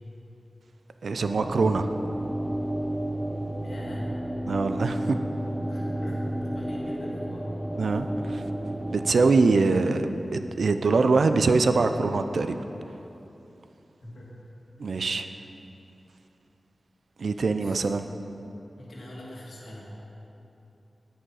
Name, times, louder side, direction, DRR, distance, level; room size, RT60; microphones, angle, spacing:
voice 1, 1.0-1.9 4.5-5.2 7.7-8.4 8.9-12.6 14.8-15.3 17.2-18.0, right 3 dB, 75° right, 9 dB, 0.5 m, -23 dB
sound 1, 1.2-9.4, right 1 dB, 10° right, 0.6 m, -31 dB
voice 2, 3.6-4.1 5.7-7.5 8.0-8.1 14.0-14.3 14.8-15.0 17.5-17.8 18.8-19.8, left 1 dB, 75° left, -5 dB, 2.4 m, -43 dB
10.0 x 8.8 x 4.8 m, 3.0 s
wide cardioid pair, 105°, 0 cm